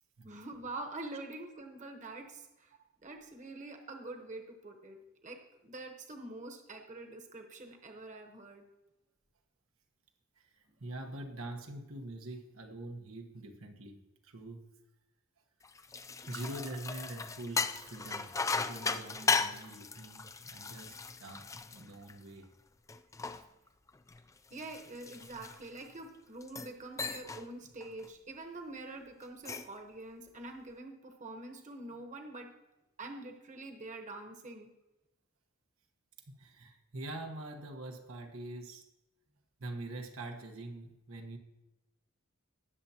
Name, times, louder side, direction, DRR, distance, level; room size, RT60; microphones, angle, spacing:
voice 1, 0.2-2.7 3.0-8.6 24.5-32.5 33.0-34.7, right 2 dB, 35° right, 4 dB, 1.1 m, -45 dB
voice 2, 10.4-14.7 16.3-22.5 23.2-23.4 36.3-38.9 39.6-41.4, right 2 dB, 90° right, 3 dB, 1.2 m, -45 dB
sound 1, 15.6-22.4 22.9-25.9 26.4-26.7 27.0-27.5 27.8-28.1 29.2-29.8, left 4 dB, 15° left, 0.3 m, -37 dB
18.5 x 6.9 x 2.9 m, 0.99 s
head